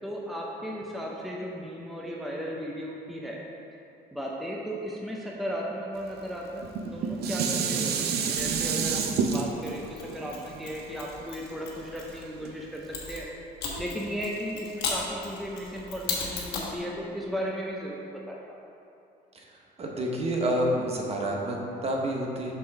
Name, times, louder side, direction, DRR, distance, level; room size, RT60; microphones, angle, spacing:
voice 1, 0.0-3.4 4.1-13.3 13.8-18.6, equal, ahead, -3 dB, 0.7 m, -35 dB
Dishes pots and pans, 6.6-11.9 12.4-12.5, right 6 dB, 75° right, 0.6 m, -29 dB
Mechanisms, 8.4-12.2 12.9-16.8, left 4 dB, 90° left, 1.2 m, -37 dB
voice 2, 19.8-22.5, right 1 dB, 35° right, 0 dB, 1.0 m, -28 dB
5.7 x 3.8 x 5.9 m, 2.7 s
cardioid pair, 110°, 17 cm